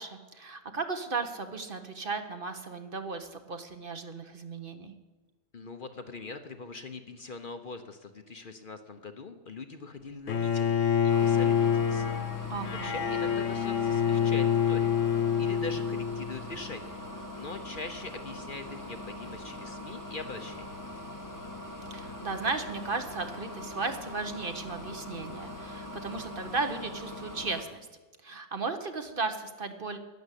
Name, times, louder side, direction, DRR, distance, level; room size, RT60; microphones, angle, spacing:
voice 1, 0.0-4.9 12.5-13.0 21.9-27.9 28.2-30.0, right 4 dB, 45° right, 7 dB, 1.2 m, -35 dB
voice 2, 5.5-12.2 12.7-14.9 15.4-20.8, left 3 dB, 45° left, 7 dB, 1.0 m, -42 dB
Bowed string instrument, 10.3-16.4, left 8 dB, 80° left, 1.3 m, -27 dB
sound 1, 11.1-27.6, left 1 dB, 15° left, 1.6 m, -42 dB
12.0 x 10.5 x 8.3 m, 1.3 s
omnidirectional pair, 1.3 m